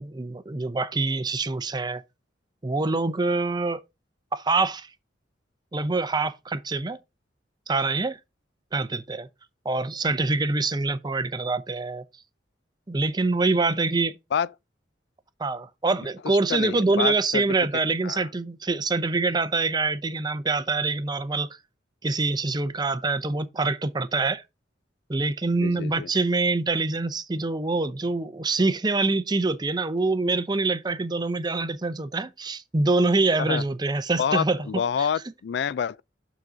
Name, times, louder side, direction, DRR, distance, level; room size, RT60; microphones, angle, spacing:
voice 1, 0.0-2.0 2.6-3.8 4.3-4.9 5.7-7.0 7.7-8.2 8.7-9.3 9.6-12.0 12.9-14.2 15.4-21.5 22.0-24.4 25.1-34.6 35.0-35.1, right 3 dB, 20° right, 0.6 m, -25 dB
voice 2, 16.2-17.4 18.0-18.3 25.6-26.1 33.4-33.6 34.2-36.0, left 7 dB, 65° left, 0.3 m, -28 dB
7.3 x 4.0 x 6.2 m
head